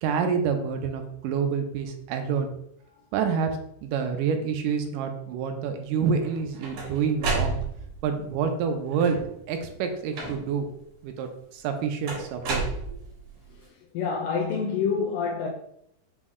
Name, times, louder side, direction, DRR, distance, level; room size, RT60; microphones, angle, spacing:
voice 1, 0.0-2.5 3.1-7.6 8.0-9.2 9.5-10.7 11.0-13.0, right 6 dB, 85° right, 6 dB, 2.1 m, -28 dB
sound 1, 6.2-8.1 8.9-9.4 10.1-10.7 12.1-13.4, right 3 dB, 65° right, 2.1 m, -31 dB
voice 2, 13.5-15.5, left 5 dB, 90° left, -2 dB, 2.2 m, -28 dB
5.9 x 2.1 x 3.5 m, 0.74 s
omnidirectional pair, 3.6 m